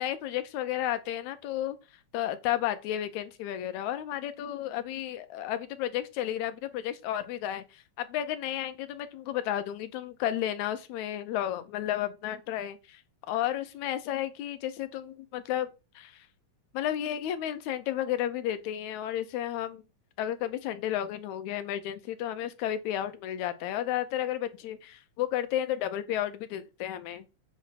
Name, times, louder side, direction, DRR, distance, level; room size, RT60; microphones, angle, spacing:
voice 1, 0.0-1.8 2.1-13.0 13.3-16.3 16.7-19.8 20.2-27.3, left 11 dB, 80° left, 2.1 m, -32 dB
8.5 x 3.1 x 5.8 m
omnidirectional pair, 3.3 m